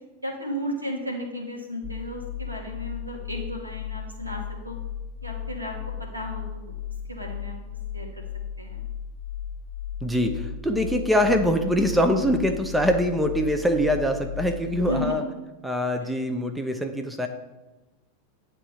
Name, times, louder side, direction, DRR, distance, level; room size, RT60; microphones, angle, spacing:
voice 1, 0.2-4.8 5.2-6.7 7.1-7.6 7.9-8.2 8.6-8.8 14.8-15.1, equal, 85° right, 0 dB, 1.6 m, -34 dB
sound 1, 1.8-15.2, left 9 dB, 20° left, 1.4 m, -35 dB
voice 2, 10.0-15.2 15.6-17.3, equal, 5° right, 6 dB, 0.6 m, -23 dB
9.7 x 3.6 x 5.7 m, 1.1 s
figure-of-eight pair, 90°, 0 cm